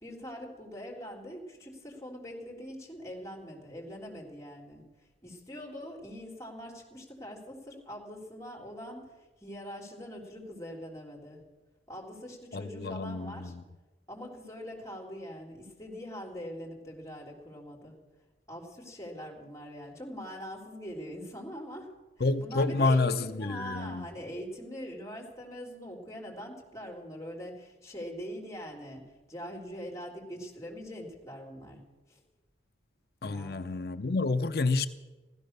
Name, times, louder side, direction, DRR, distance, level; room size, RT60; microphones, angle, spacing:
voice 1, 0.0-4.8 5.2-9.1 9.4-11.4 11.9-13.5 14.1-18.0 18.5-21.9 22.2-29.0 29.3-31.8 32.1-32.2 33.2-33.6, equal, 20° left, 3.6 m, -43 dB
voice 2, 12.5-13.6 22.2-24.0 33.2-34.9, left 3 dB, 55° left, 0.7 m, -29 dB
15.5 x 13.5 x 6.7 m
head